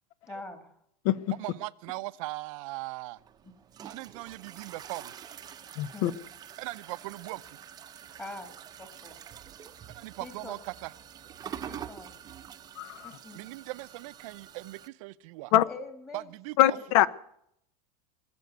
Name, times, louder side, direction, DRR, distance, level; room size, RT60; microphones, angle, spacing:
voice 1, 0.3-0.8 1.9-2.0 3.4-3.5 5.9-6.2 8.2-9.2 9.8-9.9 10.2-10.6 11.6-12.3 13.0-13.4 15.5-16.3 16.6-16.9, left 2 dB, 15° left, 1.9 m, -45 dB
voice 2, 1.4-3.2 3.8-5.1 6.6-7.4 9.9-10.9 13.3-15.5 16.1-16.8, right 21 dB, 65° right, 0.6 m, -39 dB
sound 1, 3.2-14.9, right 9 dB, 20° right, 0.7 m, -46 dB
voice 3, 5.8-6.1 12.8-13.1 15.5-15.6 16.6-17.1, left 13 dB, 65° left, 0.8 m, -23 dB
20.0 x 7.0 x 9.5 m
supercardioid pair, 150°, 19 cm